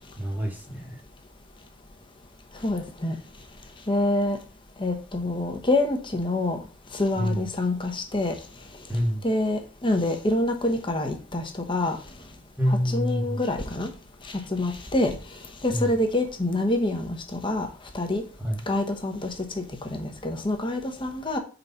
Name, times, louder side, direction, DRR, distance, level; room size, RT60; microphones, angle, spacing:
voice 1, 0.2-1.0 7.2-7.4 8.9-9.3 12.6-13.4 15.7-15.9 18.4-18.6, equal, 10° right, 0 dB, 1.3 m, -27 dB
voice 2, 2.6-3.2 3.9-4.4 4.8-6.6 6.9-8.3 9.2-12.0 12.7-13.9 14.5-15.1 15.6-17.7 17.9-18.2 18.7-19.3 19.9-21.4, left 2 dB, 25° left, 4 dB, 1.0 m, -26 dB
4.7 x 4.0 x 5.7 m, 0.37 s
head